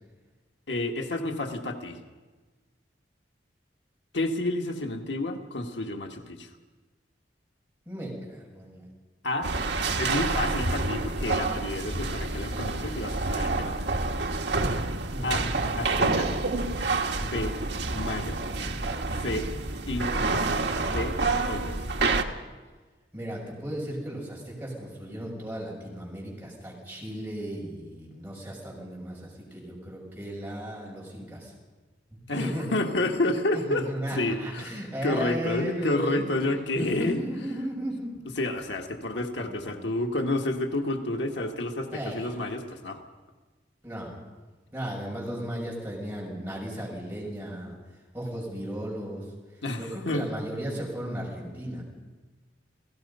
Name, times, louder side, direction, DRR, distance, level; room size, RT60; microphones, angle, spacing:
voice 1, 0.7-2.0 4.1-6.5 9.2-9.5 10.0-13.8 15.2-15.5 15.8-16.3 17.2-17.6 17.9-18.4 19.2-19.5 19.9-20.3 20.8-21.2 21.5-21.9 32.3-37.2 38.4-43.0 49.6-50.3, left 2 dB, 80° left, 4 dB, 1.8 m, -30 dB
voice 2, 7.9-8.9 15.1-15.5 18.4-18.6 19.0-19.3 23.1-31.5 32.1-32.7 33.5-36.2 36.7-38.1 39.4-39.7 41.9-42.4 43.8-44.2 44.7-47.8 48.1-49.2 49.8-51.8, equal, 10° right, -4 dB, 6.9 m, -35 dB
sound 1, 9.4-22.2, right 3 dB, 65° right, 1.4 m, -28 dB
29.5 x 16.5 x 5.6 m, 1.3 s
head